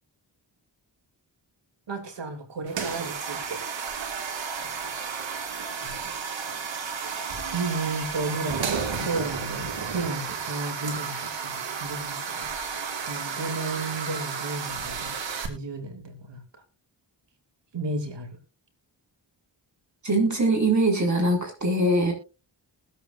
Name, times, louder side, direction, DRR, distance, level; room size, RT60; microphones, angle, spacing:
voice 1, 1.9-3.6 4.5-4.7 5.8-6.2 7.5-12.5 13.0-15.1 15.5-16.4 17.7-18.4, right 3 dB, 70° right, 5 dB, 3.2 m, -33 dB
sound 1, 2.7-15.5, right 6 dB, 90° right, 2.1 m, -32 dB
voice 2, 20.0-22.1, right 1 dB, 40° right, 1 dB, 6.8 m, -22 dB
20.0 x 8.1 x 2.6 m, 0.31 s
cardioid pair, 60°, 44 cm